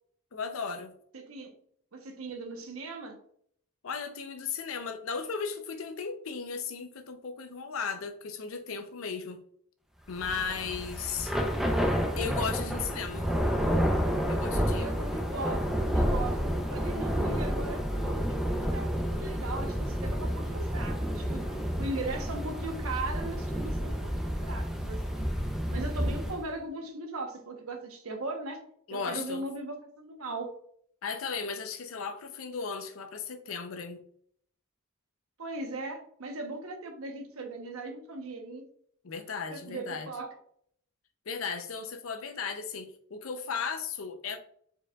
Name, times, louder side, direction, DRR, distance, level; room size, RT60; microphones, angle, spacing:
voice 1, 0.3-0.9 3.8-9.4 10.1-11.3 12.2-13.3 14.3-14.9 28.9-29.5 31.0-34.0 39.0-40.1 41.3-44.4, left 5 dB, 70° left, 0.6 m, -36 dB
voice 2, 1.1-1.5 1.9-3.2 14.8-16.4 16.7-18.3 18.6-25.2 25.7-28.6 28.9-30.5 35.4-38.6 39.5-40.3, right 2 dB, 85° right, 1.0 m, -38 dB
Thunder / Rain, 10.1-26.5, equal, ahead, 0.6 m, -30 dB
4.7 x 4.7 x 2.3 m
head